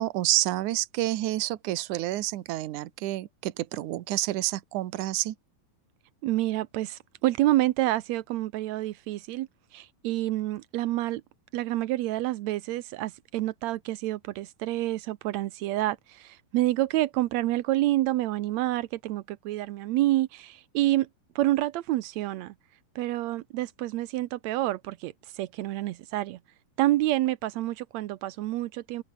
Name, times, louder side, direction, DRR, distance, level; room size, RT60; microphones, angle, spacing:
voice 1, 0.0-5.4, right 16 dB, 70° right, 2.4 m, -29 dB
voice 2, 6.2-9.5 9.7-11.2 11.5-21.1 21.3-22.5 22.9-26.4 26.8-29.0, right 16 dB, 85° right, 1.6 m, -28 dB
open air
omnidirectional pair, 4.0 m